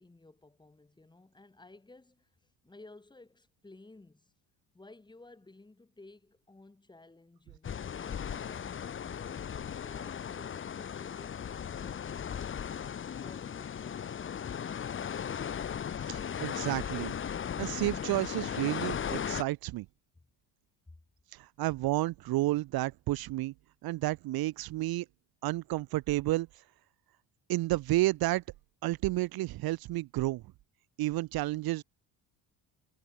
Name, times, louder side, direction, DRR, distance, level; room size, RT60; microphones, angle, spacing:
voice 1, 0.0-4.3 4.7-7.7 8.0-12.3 13.2-14.4 20.1-20.3 20.9-21.0, left 2 dB, 10° left, 6.2 m, -55 dB
sound 1, 7.6-19.4, left 8 dB, 30° left, 1.3 m, -37 dB
voice 2, 16.0-17.1 17.6-19.9 21.3-23.5 23.8-25.1 25.4-26.6 27.5-28.4 28.8-30.4 31.0-31.8, right 17 dB, 60° right, 1.0 m, -31 dB
cardioid pair, 140°, 40 cm